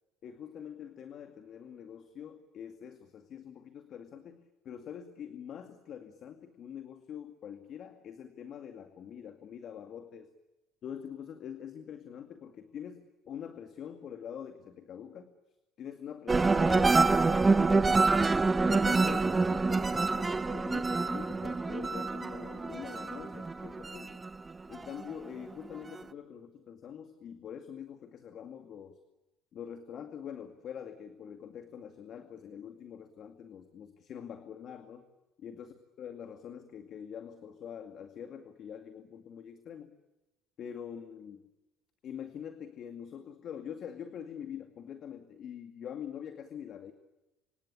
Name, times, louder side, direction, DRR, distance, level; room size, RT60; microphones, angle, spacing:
voice 1, 0.2-10.3 10.8-15.3 15.8-18.4 18.6-24.2 24.7-29.0 29.5-35.1 35.4-40.0 40.6-41.5 42.0-46.9, left 8 dB, 50° left, 8 dB, 2.2 m, -44 dB
sound 1, 16.3-25.1 25.5-26.0, right 3 dB, 20° right, 1.0 m, -27 dB
26.5 x 26.5 x 8.5 m, 1.0 s
cardioid pair, 105°, 0 cm